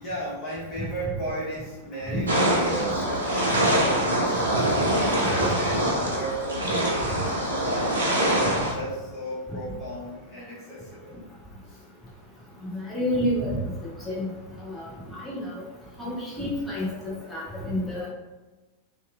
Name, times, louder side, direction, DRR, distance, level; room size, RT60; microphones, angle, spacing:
voice 1, 0.0-4.4 4.8-8.4 8.7-11.1 11.7-11.8 16.8-17.4, right 1 dB, 25° left, -7 dB, 1.3 m, -35 dB
sound 1, 2.3-8.7, right 1 dB, 75° right, 0.5 m, -24 dB
voice 2, 12.7-13.6 14.0-14.3 14.6-14.8 15.2-15.6 16.0-18.1, left 1 dB, 5° left, -7 dB, 0.8 m, -29 dB
2.8 x 2.4 x 3.4 m, 1.1 s
figure-of-eight pair, 90°, 0 cm